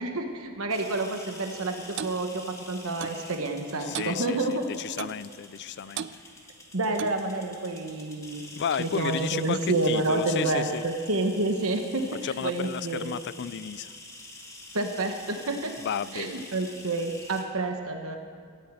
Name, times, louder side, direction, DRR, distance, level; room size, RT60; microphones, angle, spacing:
voice 1, 0.0-4.6 6.7-12.1 12.4-13.1 14.7-15.7 16.1-18.2, right 2 dB, 70° right, 4 dB, 1.2 m, -29 dB
sound 1, 0.7-17.4, left 2 dB, 15° left, 1.8 m, -47 dB
Clock, 2.0-2.2 3.0-3.2 3.9-4.2 5.0-5.2 6.0-6.2 7.0-7.2, right 8 dB, 55° right, 0.4 m, -35 dB
voice 2, 3.8-6.1 8.6-10.8 12.2-13.9 15.8-16.4, left 7 dB, 50° left, 18 dB, 0.4 m, -33 dB
14.0 x 9.4 x 9.1 m, 2.1 s
head